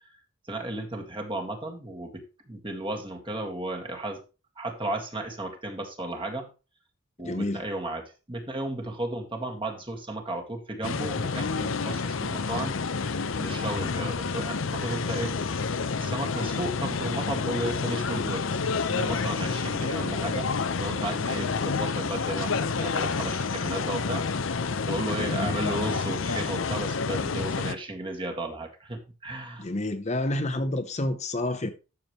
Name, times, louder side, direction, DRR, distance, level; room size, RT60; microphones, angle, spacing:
voice 1, 0.5-4.2 4.6-6.5 7.2-12.8 13.4-15.4 16.0-18.5 18.9-24.3 24.9-29.7, right 1 dB, 25° right, 1.9 m, -34 dB
voice 2, 7.2-7.6 25.1-25.8 29.6-31.7, left 1 dB, 35° left, 0.9 m, -29 dB
sound 1, 10.8-27.8, left 4 dB, 70° left, 0.7 m, -29 dB
11.5 x 7.0 x 3.1 m
head